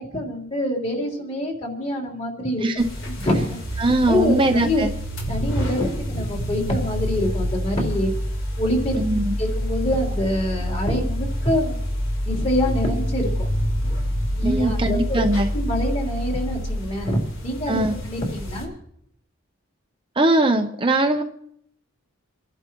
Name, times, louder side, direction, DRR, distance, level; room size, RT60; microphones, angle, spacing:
voice 1, 0.0-2.6 3.1-3.8 4.1-4.8 5.3-8.1 8.6-9.0 9.4-11.8 12.3-13.5 14.3-15.2 15.5-18.7, left 1 dB, 30° left, -1 dB, 3.5 m, -25 dB
sound 1, 2.8-18.6, equal, 70° left, 3.7 m, -27 dB
voice 2, 3.8-4.9 9.0-9.3 14.4-15.5 17.7-17.9 20.2-21.2, right 2 dB, 25° right, 4 dB, 0.7 m, -20 dB
29.0 x 11.5 x 3.0 m, 0.70 s
head